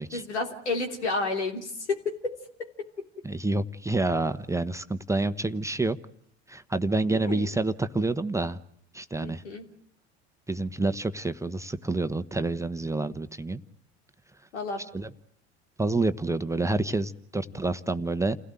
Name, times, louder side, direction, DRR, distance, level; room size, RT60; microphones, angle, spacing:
voice 1, 0.1-2.3 2.6-2.7 3.0-3.1 7.1-7.5 9.2-9.6 14.5-14.9, left 3 dB, 90° left, 4 dB, 3.4 m, -31 dB
voice 2, 3.2-6.0 6.5-8.6 8.9-9.4 10.5-13.6 14.9-15.1 15.8-18.4, right 2 dB, 10° right, 9 dB, 1.2 m, -28 dB
29.0 x 17.0 x 9.1 m, 0.66 s
hypercardioid pair, 70°, 33 cm